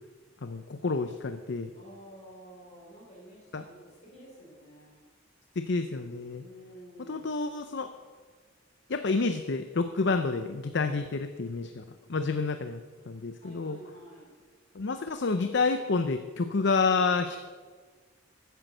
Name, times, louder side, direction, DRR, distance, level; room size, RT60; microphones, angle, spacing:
voice 1, 0.4-1.7 3.5-3.6 5.6-6.4 7.1-7.9 8.9-11.8 12.1-12.8 13.1-13.8 14.7-17.4, left 4 dB, 65° left, 9 dB, 0.7 m, -29 dB
voice 2, 1.7-5.0 6.4-7.5 13.4-14.3, right 1 dB, 35° left, -3 dB, 4.3 m, -51 dB
14.0 x 9.2 x 6.7 m, 1.5 s
head